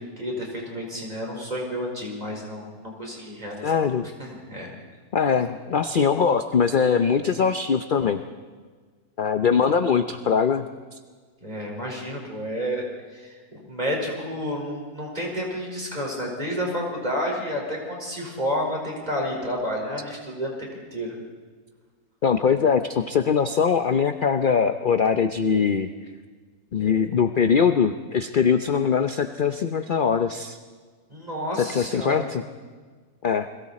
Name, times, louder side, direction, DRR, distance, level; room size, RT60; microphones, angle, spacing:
voice 1, 0.2-3.7 4.2-4.7 11.4-12.9 13.1-21.2 31.1-32.3, equal, 25° right, -1 dB, 4.9 m, -30 dB
voice 2, 3.6-4.1 5.1-8.2 9.2-10.7 22.2-25.9 26.7-30.6 31.6-32.4 33.2-33.5, left 6 dB, 50° left, 9 dB, 0.6 m, -22 dB
30.0 x 21.5 x 4.3 m, 1.5 s
omnidirectional pair, 1.6 m